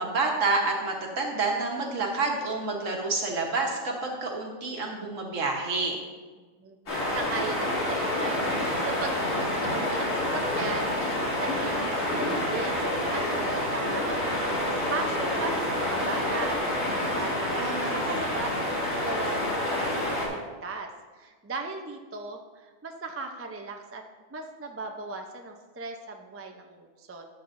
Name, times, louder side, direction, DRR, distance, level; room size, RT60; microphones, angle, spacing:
voice 1, 0.0-6.0 17.5-18.3, right 3 dB, 70° right, 1 dB, 1.6 m, -29 dB
voice 2, 6.4-18.5 18.9-24.0 24.3-27.2, right 3 dB, 25° right, 3 dB, 0.3 m, -37 dB
sound 1, 6.9-20.3, left 1 dB, 70° left, 2.6 m, -28 dB
12.5 x 7.1 x 2.6 m, 1.4 s
omnidirectional pair, 1.4 m